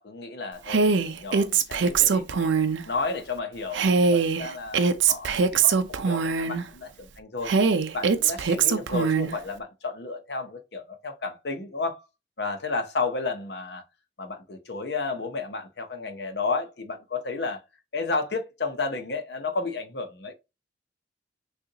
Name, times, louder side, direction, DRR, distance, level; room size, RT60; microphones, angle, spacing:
voice 1, 0.0-2.5 2.8-7.5 7.9-12.1 12.4-13.8 14.2-17.6 17.9-20.3, left 3 dB, 60° left, 0.8 m, -32 dB
Female speech woman speaking, 0.7-2.8 3.7-6.6 7.4-9.3, right 5 dB, 75° right, 0.5 m, -22 dB
6.4 x 2.5 x 2.8 m
head